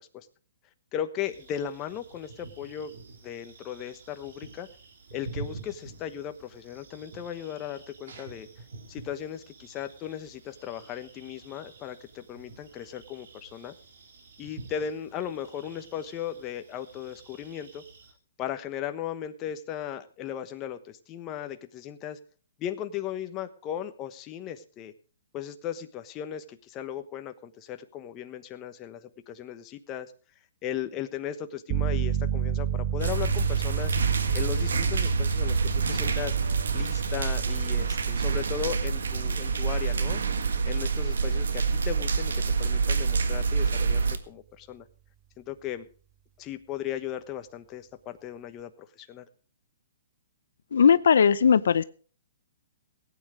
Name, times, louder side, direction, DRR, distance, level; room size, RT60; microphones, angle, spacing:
voice 1, 0.9-2.9 3.2-4.7 5.1-8.5 8.9-13.7 14.4-17.8 18.4-22.2 22.6-24.9 25.3-30.1 30.6-33.9 34.3-35.6 35.9-36.4 36.7-40.2 40.6-44.9 45.4-45.9 46.4-48.7 49.0-49.3, left 10 dB, 25° left, 9 dB, 1.1 m, -36 dB
sound 1, 1.2-18.1, right 3 dB, 70° right, 4.6 m, -48 dB
sound 2, 31.7-42.2, right 10 dB, 30° right, 1.7 m, -33 dB
sound 3, 33.0-44.2, right 5 dB, 85° right, 1.6 m, -27 dB
voice 2, 50.7-51.8, left 7 dB, 75° left, 15 dB, 0.6 m, -19 dB
17.5 x 9.1 x 4.8 m, 0.40 s
hypercardioid pair, 150°, 0 cm